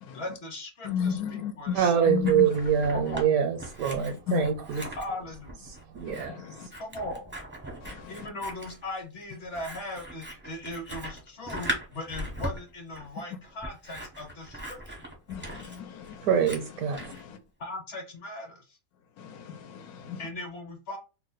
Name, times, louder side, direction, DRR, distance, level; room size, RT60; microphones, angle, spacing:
voice 1, 0.1-2.1 2.9-3.3 5.0-5.7 6.8-7.4 8.1-15.0 17.6-18.8 20.2-21.0, left 1 dB, 50° left, 1.0 m, -38 dB
voice 2, 0.8-1.8 2.1-2.5 4.3-4.5 6.0-6.7 7.8-8.3 15.3-16.3 16.9-17.4 19.2-20.2, left 7 dB, 80° left, 1.1 m, -33 dB
Scissors, 1.7-3.3 3.6-17.2, equal, 15° right, 0.4 m, -40 dB
voice 3, 1.7-4.9 5.7-6.7 16.2-17.1, right 8 dB, 80° right, 1.0 m, -25 dB
2.7 x 2.1 x 3.8 m
omnidirectional pair, 1.5 m